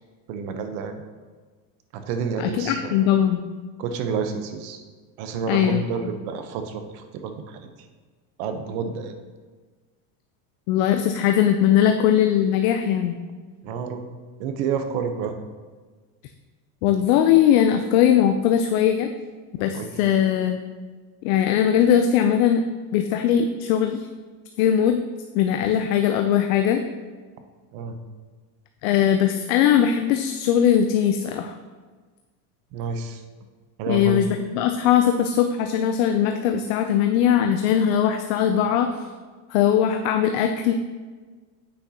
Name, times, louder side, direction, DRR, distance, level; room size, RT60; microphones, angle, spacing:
voice 1, 0.3-1.0 1.9-3.1 3.8-4.8 5.2-7.7 8.4-9.1 13.6-14.0 14.4-15.3 19.7-19.9 27.7-28.0 32.7-33.2 33.8-34.2, right 6 dB, 55° right, 7 dB, 0.9 m, -29 dB
voice 2, 2.4-3.4 5.5-5.8 10.7-13.2 16.8-19.1 19.6-20.6 21.2-22.6 22.9-24.0 24.6-25.0 25.3-26.8 28.8-31.5 33.9-38.9 39.5-40.7, left 9 dB, 65° left, 6 dB, 0.6 m, -20 dB
8.6 x 6.3 x 2.8 m, 1.4 s
supercardioid pair, 140°, 46 cm